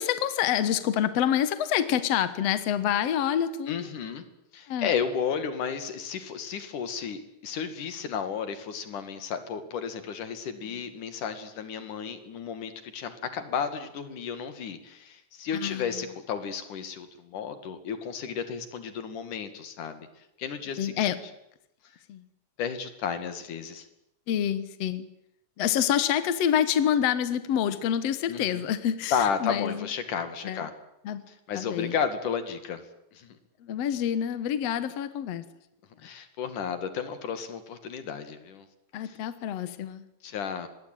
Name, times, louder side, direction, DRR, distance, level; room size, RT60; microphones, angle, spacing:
voice 1, 0.0-3.9 4.7-4.9 15.5-15.9 20.8-21.2 22.1-22.2 24.3-25.1 25.6-29.9 30.4-30.6 31.1-31.2 31.6-31.9 33.6-35.4 38.9-40.0, left 9 dB, 60° left, 13 dB, 2.3 m, -27 dB
voice 2, 3.7-4.3 4.5-20.1 20.4-20.9 22.6-23.9 28.3-28.6 29.1-30.7 31.3-32.8 33.1-33.4 36.0-38.7 39.0-39.2 40.2-40.7, left 7 dB, 85° left, 10 dB, 3.7 m, -33 dB
26.0 x 20.5 x 9.1 m, 0.84 s
omnidirectional pair, 3.5 m